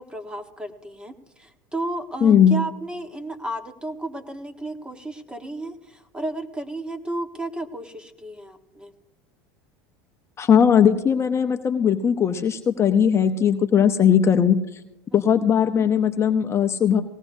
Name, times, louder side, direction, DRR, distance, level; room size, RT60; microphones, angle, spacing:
voice 1, 0.0-8.9 15.1-15.4, right 1 dB, 10° right, 8 dB, 1.3 m, -33 dB
voice 2, 2.2-2.6 10.4-14.6 15.1-17.0, left 8 dB, 30° left, 7 dB, 0.7 m, -18 dB
19.5 x 17.0 x 2.7 m, 0.92 s
supercardioid pair, 115°, 9 cm